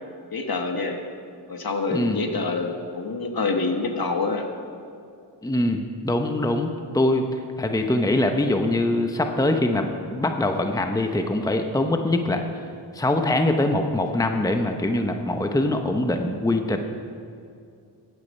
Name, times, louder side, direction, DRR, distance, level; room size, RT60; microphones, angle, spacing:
voice 1, 0.3-1.0 1.5-4.5, left 3 dB, 55° left, 4 dB, 1.4 m, -26 dB
voice 2, 5.4-12.4 12.9-16.8, left 1 dB, 10° left, 5 dB, 0.9 m, -23 dB
15.0 x 8.9 x 5.4 m, 2.4 s
cardioid pair, 50°, 44 cm